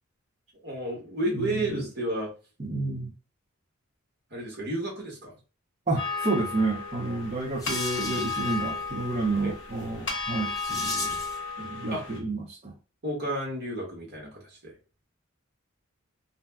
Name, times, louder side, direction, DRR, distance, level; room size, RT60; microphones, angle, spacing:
voice 1, 0.6-2.3 4.3-5.3 9.4-9.5 11.9-12.0 13.0-14.8, right 1 dB, 50° right, -1 dB, 1.2 m, -31 dB
voice 2, 1.2-1.8 2.6-3.1 5.9-11.2 11.6-12.7, right 3 dB, 30° right, -5 dB, 0.5 m, -30 dB
sound 1, 6.0-12.2, left 4 dB, 60° left, 0.9 m, -34 dB
sound 2, 7.0-11.5, left 2 dB, 15° left, 0.6 m, -39 dB
2.6 x 2.1 x 3.4 m, 0.32 s
head